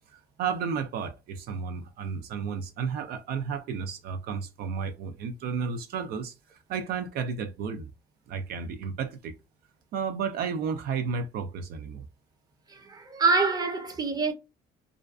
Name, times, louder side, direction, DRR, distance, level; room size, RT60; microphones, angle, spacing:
voice 1, 0.1-7.9 8.3-9.3 9.9-12.0, right 6 dB, 65° right, 0.4 m, -32 dB
voice 2, 12.7-14.3, right 3 dB, 25° right, 0.6 m, -26 dB
2.4 x 2.2 x 2.3 m
cardioid pair, 110°, 17 cm